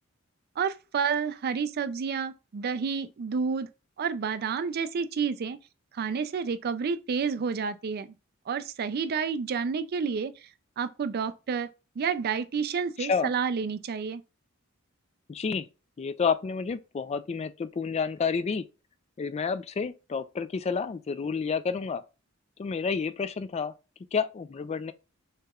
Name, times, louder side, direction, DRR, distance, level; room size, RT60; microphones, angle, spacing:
voice 1, 0.6-3.7 4.0-5.6 5.9-8.1 8.5-10.3 10.8-11.7 12.0-14.2, right 6 dB, 50° right, 0.4 m, -29 dB
voice 2, 13.0-13.3 15.3-15.7 16.0-18.6 19.2-22.0 22.6-23.7 24.1-24.9, left 5 dB, 30° left, 0.3 m, -29 dB
6.4 x 2.9 x 2.3 m
head